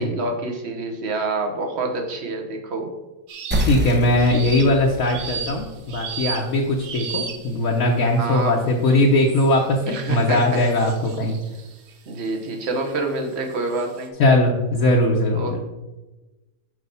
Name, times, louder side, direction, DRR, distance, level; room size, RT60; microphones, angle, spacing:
voice 1, 0.0-2.9 8.2-8.5 9.9-10.6 12.1-14.1 15.3-15.6, right 2 dB, 50° right, 3 dB, 1.3 m, -27 dB
sound 1, 3.3-3.8 4.2-7.7 8.3-8.7 9.3-12.8 13.3-14.1, right 6 dB, 85° right, 1.3 m, -35 dB
sound 2, 3.5-8.6, right 1 dB, 10° right, 0.6 m, -30 dB
voice 2, 3.6-11.4 14.2-15.6, left 1 dB, 70° left, -2 dB, 1.3 m, -20 dB
6.3 x 4.9 x 5.4 m, 1.1 s
omnidirectional pair, 1.5 m